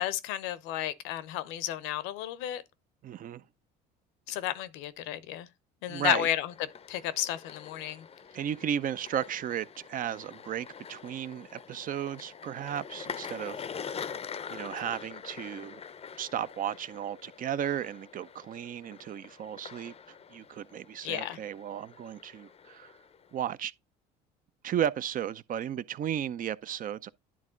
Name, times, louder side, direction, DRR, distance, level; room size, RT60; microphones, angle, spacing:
voice 1, 0.0-2.6 4.3-5.5 5.8-6.5 6.9-8.0 21.0-21.4, left 13 dB, 75° left, 0.8 m, -32 dB
voice 2, 3.0-3.4 4.3-4.4 5.9-6.3 8.3-14.1 14.5-15.8 16.2-19.9 20.3-23.0 23.3-23.7 24.6-27.1, right 9 dB, 40° right, 0.5 m, -34 dB
sound 1, 6.4-23.4, left 7 dB, 30° left, 0.6 m, -45 dB
10.5 x 3.6 x 3.7 m
supercardioid pair, 75°, 21 cm